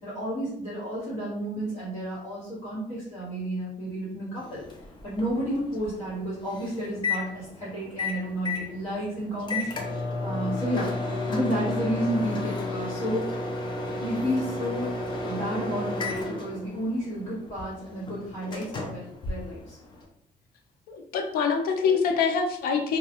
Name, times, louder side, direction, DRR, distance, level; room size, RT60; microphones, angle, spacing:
voice 1, 0.0-4.7 5.0-10.9 11.3-13.4 14.0-19.8, right 1 dB, 50° left, -9 dB, 1.3 m, -31 dB
Microwave oven, 4.4-20.1, left 3 dB, 30° left, 0.4 m, -33 dB
voice 2, 20.9-23.0, left 5 dB, 90° left, 4 dB, 0.4 m, -25 dB
2.3 x 2.2 x 2.9 m, 0.73 s
cardioid pair, 165°, 15 cm